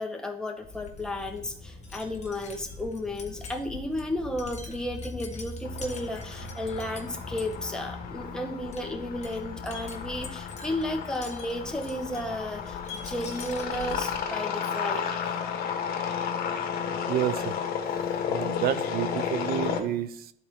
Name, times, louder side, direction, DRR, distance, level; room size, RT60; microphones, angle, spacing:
voice 1, 0.0-15.1, left 1 dB, 5° left, 2 dB, 1.1 m, -33 dB
Wind chime, 0.6-14.3, left 3 dB, 40° left, 1.4 m, -42 dB
sound 1, 5.6-19.8, left 7 dB, 65° left, 1.3 m, -33 dB
voice 2, 17.1-17.5 18.3-20.3, right 11 dB, 65° right, 15 dB, 0.6 m, -29 dB
12.0 x 4.3 x 3.5 m, 0.65 s
cardioid pair, 110°, 17 cm